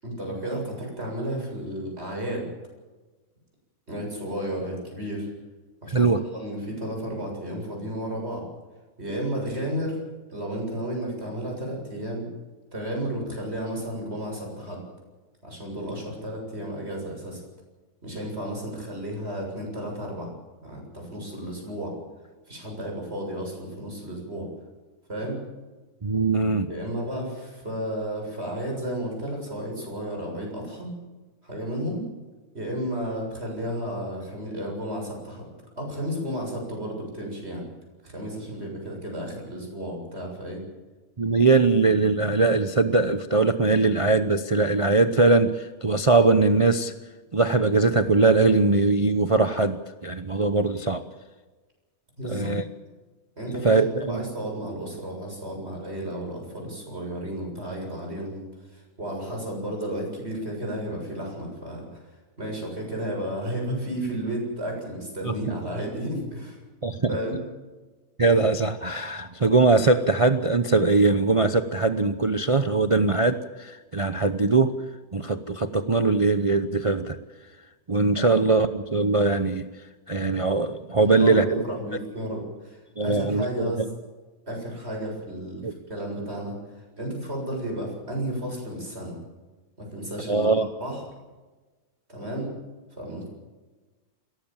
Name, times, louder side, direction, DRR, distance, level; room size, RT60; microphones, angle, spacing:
voice 1, 0.0-2.5 3.9-5.3 5.8-6.1 6.3-8.4 9.0-10.0 10.3-12.3 12.7-14.8 15.4-17.4 18.0-20.3 20.6-21.9 22.5-24.5 25.1-25.4 26.7-30.9 31.4-32.1 32.5-35.5 35.8-37.6 38.0-40.6 52.2-52.5 53.4-53.8 54.1-58.5 58.7-62.0 62.4-66.6 67.1-67.4 81.0-83.8 84.5-86.6 87.0-89.2 89.8-91.0 92.1-92.5 93.0-93.3, right 1 dB, 45° right, 0 dB, 7.5 m, -32 dB
voice 2, 5.9-6.2 26.0-26.7 41.2-46.9 47.3-51.0 52.2-52.6 53.6-54.2 65.2-65.6 66.8-67.2 68.2-74.7 75.1-77.2 77.9-79.7 80.1-81.6 83.0-83.9 85.6-85.7 90.3-90.7, right 3 dB, 30° right, 9 dB, 0.7 m, -21 dB
22.5 x 17.5 x 7.4 m, 1.3 s
omnidirectional pair, 1.5 m